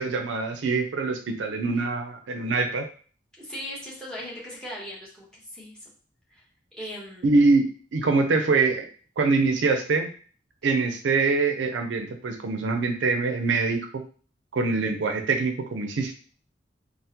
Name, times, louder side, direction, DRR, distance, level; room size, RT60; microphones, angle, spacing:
voice 1, 0.0-2.8 7.2-7.7 7.9-8.8 9.2-10.1 10.6-14.0 14.5-16.1, right 3 dB, 85° right, 5 dB, 0.4 m, -24 dB
voice 2, 3.4-5.9 6.3-6.4 6.7-7.3, left 1 dB, 5° left, -5 dB, 0.9 m, -38 dB
3.4 x 2.0 x 2.8 m, 0.42 s
head